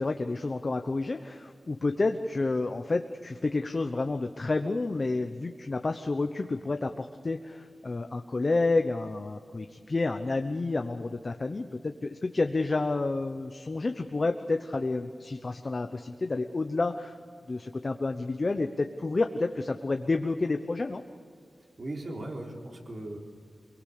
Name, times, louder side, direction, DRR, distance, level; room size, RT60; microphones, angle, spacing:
voice 1, 0.0-17.1 17.5-21.0, left 3 dB, 40° left, 6 dB, 0.9 m, -30 dB
voice 2, 21.8-23.2, right 1 dB, 50° right, 0 dB, 3.8 m, -38 dB
24.5 x 23.0 x 6.8 m, 2.2 s
wide cardioid pair, 100°, 0 cm